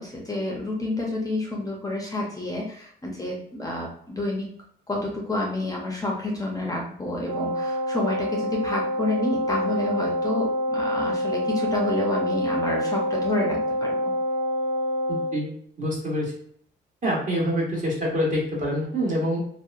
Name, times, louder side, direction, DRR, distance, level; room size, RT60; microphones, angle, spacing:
voice 1, 0.0-4.5 4.9-14.1, left 2 dB, 20° left, -2 dB, 0.5 m, -29 dB
Wind instrument woodwind instrument, 7.2-15.4, equal, 90° right, 0.4 m, -26 dB
voice 2, 15.1-15.5 15.8-16.3 17.0-19.4, equal, 40° right, -4 dB, 1.3 m, -26 dB
2.8 x 2.1 x 2.4 m, 0.63 s
cardioid pair, 90°, 20 cm